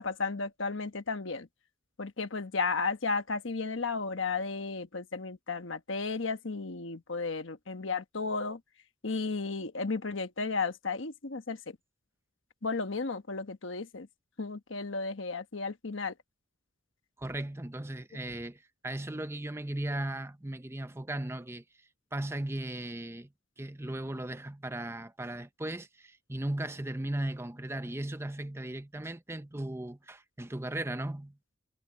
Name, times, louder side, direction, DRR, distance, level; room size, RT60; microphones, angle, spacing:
voice 1, 0.0-1.5 2.0-8.6 9.0-11.8 12.6-14.1 14.4-16.1, left 4 dB, 70° left, 1.2 m, -34 dB
voice 2, 17.2-21.6 22.1-23.3 23.6-31.4, right 1 dB, 10° right, 0.7 m, -37 dB
head